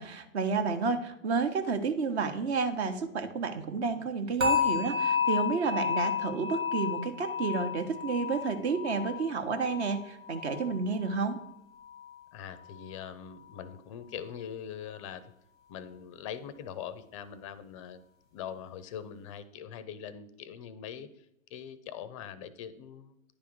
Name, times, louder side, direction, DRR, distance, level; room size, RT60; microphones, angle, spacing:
voice 1, 0.0-11.4, right 4 dB, 50° right, 8 dB, 1.1 m, -31 dB
sound 1, 4.4-11.5 11.8-12.2 12.7-12.8, left 6 dB, 80° right, 2.4 m, -32 dB
voice 2, 12.3-15.2 15.7-18.0 18.3-21.1 21.5-23.1, left 8 dB, 25° left, 15 dB, 0.4 m, -42 dB
9.9 x 3.5 x 5.9 m, 0.80 s
figure-of-eight pair, 115°, 41 cm